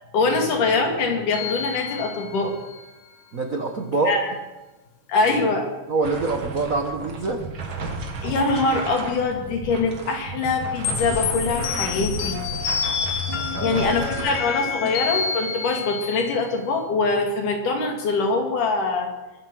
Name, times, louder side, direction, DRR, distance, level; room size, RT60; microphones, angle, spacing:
voice 1, 0.1-2.5 4.0-4.3 5.1-5.7 8.2-12.4 13.6-19.1, left 3 dB, 85° left, 2 dB, 4.1 m, -23 dB
sound 1, 1.3-2.9 10.8-16.6, left 6 dB, 70° left, 2.7 m, -28 dB
voice 2, 3.3-4.1 5.9-7.4 13.6-13.8 14.2-14.3, right 3 dB, 75° right, 4 dB, 0.7 m, -25 dB
sound 2, 6.0-14.4, right 3 dB, 45° right, 2.5 m, -33 dB
23.5 x 8.7 x 6.2 m, 1.2 s
omnidirectional pair, 3.6 m